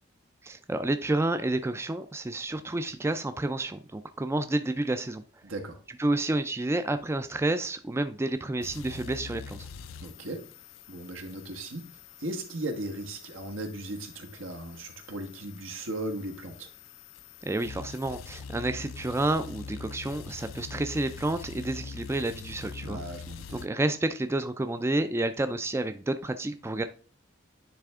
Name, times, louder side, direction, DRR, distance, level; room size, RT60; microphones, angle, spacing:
voice 1, 0.4-5.2 6.0-9.7 17.5-23.0 23.5-26.8, right 2 dB, 15° right, 10 dB, 0.3 m, -30 dB
voice 2, 5.4-5.8 10.0-10.4 10.9-11.9 12.2-16.7 22.8-23.6, right 1 dB, 80° right, 4 dB, 1.3 m, -37 dB
sound 1, 8.6-23.7, left 5 dB, 80° left, 0.4 m, -44 dB
10.0 x 3.4 x 3.6 m, 0.39 s
head